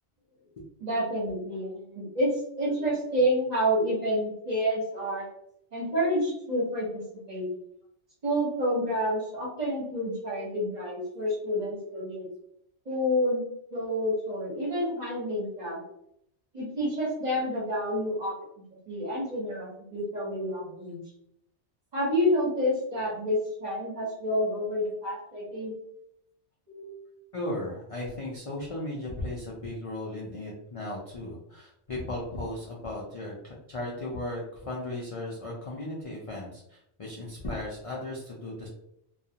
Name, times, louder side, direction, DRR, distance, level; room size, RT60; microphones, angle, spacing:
voice 1, 0.8-5.3 5.7-7.0 7.3-7.5 8.2-12.3 12.9-15.8 16.5-18.4 18.9-21.0 21.9-25.7 26.7-27.0, equal, 40° right, -4 dB, 0.9 m, -29 dB
voice 2, 27.3-38.7, left 1 dB, 55° left, -4 dB, 0.4 m, -36 dB
2.4 x 2.3 x 2.7 m, 0.76 s
omnidirectional pair, 1.2 m